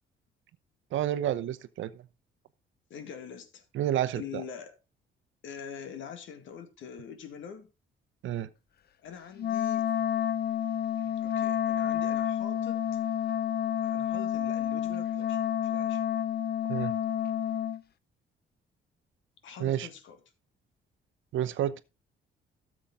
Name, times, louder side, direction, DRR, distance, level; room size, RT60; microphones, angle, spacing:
voice 1, 0.9-2.1 3.7-4.4 8.2-8.5 16.7-16.9 19.6-19.9 21.3-21.8, right 11 dB, 75° right, 0.8 m, -30 dB
voice 2, 2.9-3.6 4.1-4.8 5.4-7.7 9.0-9.9 11.0-12.8 13.8-16.0 19.4-20.2, left 7 dB, 75° left, 1.9 m, -44 dB
Wind instrument woodwind instrument, 9.4-17.8, left 9 dB, 55° left, 0.7 m, -29 dB
13.0 x 7.2 x 3.6 m
cardioid pair, 90°, 20 cm